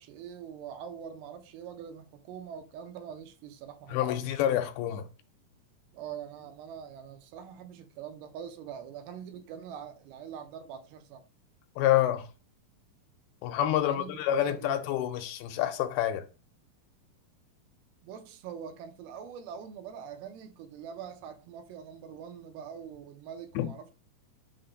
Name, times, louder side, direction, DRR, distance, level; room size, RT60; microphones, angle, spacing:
voice 1, 0.0-4.2 5.9-11.3 13.7-14.8 18.0-23.9, right 8 dB, 85° right, 2.5 m, -44 dB
voice 2, 3.9-5.1 11.8-12.3 13.4-16.2 23.6-23.7, left 12 dB, 85° left, 2.5 m, -27 dB
5.8 x 2.1 x 3.8 m
omnidirectional pair, 4.4 m